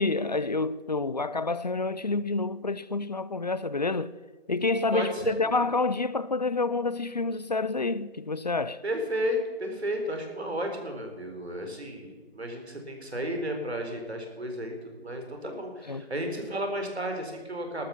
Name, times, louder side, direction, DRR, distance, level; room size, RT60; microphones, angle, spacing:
voice 1, 0.0-4.1 4.5-8.8 15.9-16.1, left 3 dB, 45° left, 0.4 m, -28 dB
voice 2, 4.9-5.5 8.8-17.9, equal, 90° right, 4.2 m, -33 dB
13.5 x 13.0 x 5.9 m
figure-of-eight pair, 165°, 31 cm